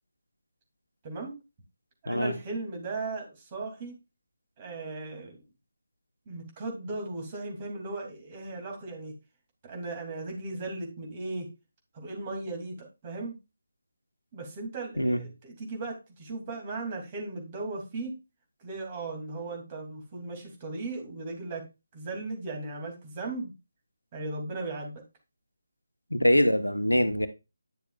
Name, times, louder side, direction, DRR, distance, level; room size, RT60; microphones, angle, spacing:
voice 1, 1.0-1.3 2.0-4.0 4.6-5.4 6.3-9.1 9.6-11.5 11.9-13.4 14.3-18.1 18.6-21.6 21.9-23.5 24.1-25.0, right 3 dB, 25° right, 2.8 m, -37 dB
voice 2, 26.1-27.3, equal, 85° left, 1.2 m, -23 dB
10.5 x 6.7 x 2.4 m
figure-of-eight pair, 150°, 0 cm